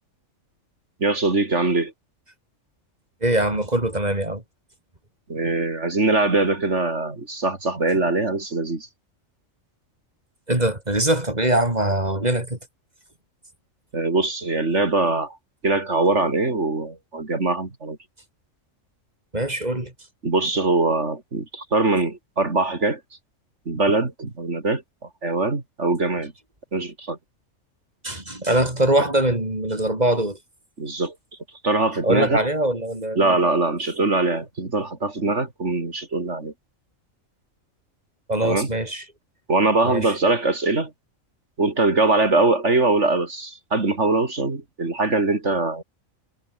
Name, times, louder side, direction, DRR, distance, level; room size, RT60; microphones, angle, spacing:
voice 1, 1.0-1.9 5.3-8.9 13.9-15.4 15.6-18.0 20.2-23.0 23.7-24.8 25.2-26.3 26.7-27.2 30.8-31.2 31.6-32.4 33.2-36.5 38.4-38.7 39.5-40.9 41.6-45.8, right 3 dB, 60° right, 3.5 m, -22 dB
voice 2, 3.2-4.4 10.5-12.6 19.3-19.9 28.0-30.4 32.0-33.2 38.3-39.0 39.8-40.1, right 1 dB, 30° right, 4.9 m, -22 dB
omnidirectional pair, 1.4 m